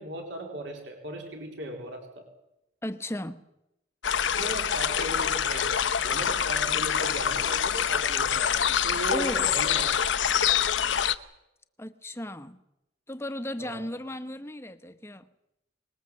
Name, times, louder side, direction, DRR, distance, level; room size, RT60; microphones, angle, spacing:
voice 1, 0.0-2.3 4.3-9.9 13.6-13.9, right 1 dB, 70° right, 3.9 m, -37 dB
voice 2, 2.8-3.4 9.1-9.5 11.8-12.6 13.1-15.3, left 1 dB, 15° left, 1.0 m, -35 dB
sound 1, 4.0-11.1, left 8 dB, 70° left, 0.9 m, -26 dB
25.5 x 20.0 x 7.6 m
head